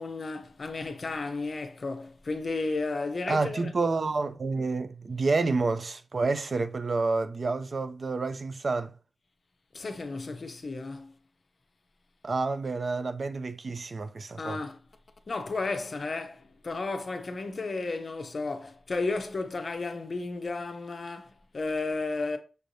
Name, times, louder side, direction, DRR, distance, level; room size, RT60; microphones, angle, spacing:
voice 1, 0.0-3.7 9.7-11.1 14.4-14.8 15.3-22.4, left 3 dB, 50° left, 0.6 m, -33 dB
voice 2, 3.3-9.0 12.2-14.6, right 3 dB, 50° right, 0.3 m, -29 dB
6.4 x 3.2 x 2.6 m
wide cardioid pair, 135°, 0 cm